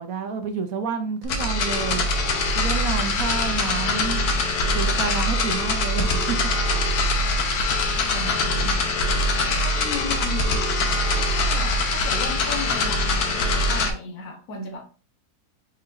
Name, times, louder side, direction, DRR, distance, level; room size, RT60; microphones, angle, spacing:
voice 1, 0.0-2.1 2.6-4.2 4.7-6.4 7.0-7.2 8.1-8.8, right 5 dB, 70° right, 1.0 m, -30 dB
sound 1, 1.2-13.9, left 2 dB, 80° left, 1.4 m, -23 dB
voice 2, 9.6-10.6 11.1-14.8, left 3 dB, 65° left, 1.4 m, -35 dB
4.6 x 4.6 x 2.5 m
omnidirectional pair, 1.7 m